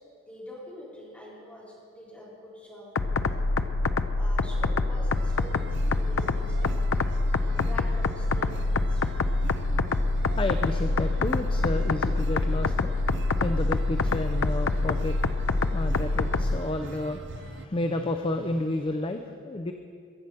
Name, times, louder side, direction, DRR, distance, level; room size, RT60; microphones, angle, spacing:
voice 1, 0.2-3.4 4.1-6.9 7.4-9.3, equal, 5° left, -8 dB, 4.1 m, -46 dB
sound 1, 3.0-16.6, left 3 dB, 70° left, 0.5 m, -26 dB
sound 2, 5.1-17.7, right 3 dB, 55° right, 0.5 m, -42 dB
voice 2, 10.4-12.9 13.4-15.2 15.7-19.7, left 1 dB, 25° left, 6 dB, 0.5 m, -31 dB
sound 3, 15.3-18.6, left 1 dB, 90° right, 3.4 m, -46 dB
22.0 x 7.8 x 5.7 m, 2.4 s
head